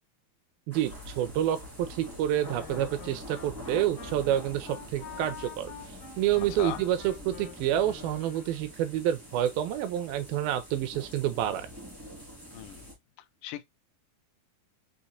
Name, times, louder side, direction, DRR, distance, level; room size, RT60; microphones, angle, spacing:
sound 1, 0.7-12.9, equal, 10° right, 0.6 m, -45 dB
voice 1, 0.7-5.7 6.2-11.7, right 11 dB, 80° right, 2.3 m, -28 dB
sound 2, 0.8-8.4, left 2 dB, 55° right, 0.8 m, -52 dB
Wind instrument woodwind instrument, 2.3-8.7, left 8 dB, 70° left, 2.5 m, -47 dB
voice 2, 12.5-12.9 13.4-13.6, left 13 dB, 90° left, 1.9 m, -37 dB
6.3 x 2.9 x 2.6 m
omnidirectional pair, 4.4 m